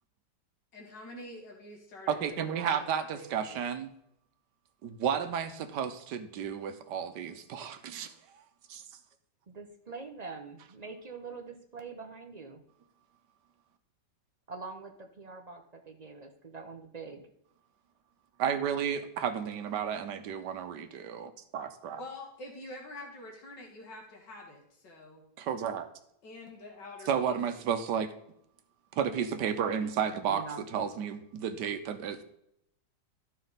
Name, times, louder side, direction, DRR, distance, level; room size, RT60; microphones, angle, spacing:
voice 1, 0.7-3.6 22.0-25.2 26.2-27.4, left 2 dB, 90° left, 1 dB, 2.0 m, -47 dB
voice 2, 2.1-3.9 4.8-8.1 8.7-8.8 18.4-22.0 25.4-25.9 27.1-28.1 28.9-30.4 30.7-32.2, right 8 dB, 80° right, 9 dB, 1.4 m, -32 dB
voice 3, 9.5-12.6 14.5-17.3 30.3-30.9, right 4 dB, 45° right, 3 dB, 0.5 m, -44 dB
12.5 x 5.3 x 4.0 m, 0.76 s
omnidirectional pair, 1.8 m